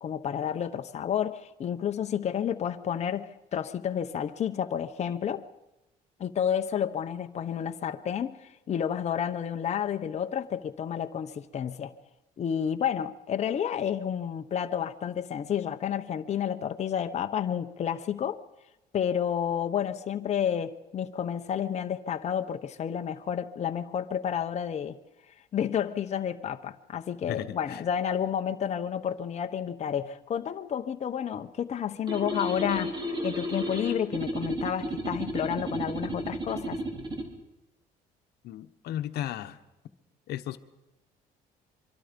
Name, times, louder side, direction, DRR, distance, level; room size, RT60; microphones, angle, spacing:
voice 1, 0.0-5.4 6.2-11.9 12.4-18.4 18.9-25.0 25.5-36.8, left 8 dB, 40° left, 0.8 m, -30 dB
voice 2, 27.2-27.8 38.4-39.6 40.3-40.6, left 12 dB, 75° left, 1.1 m, -35 dB
sound 1, 32.1-37.3, equal, 25° right, 3.4 m, -33 dB
25.0 x 24.0 x 5.2 m
cardioid pair, 110°, 17 cm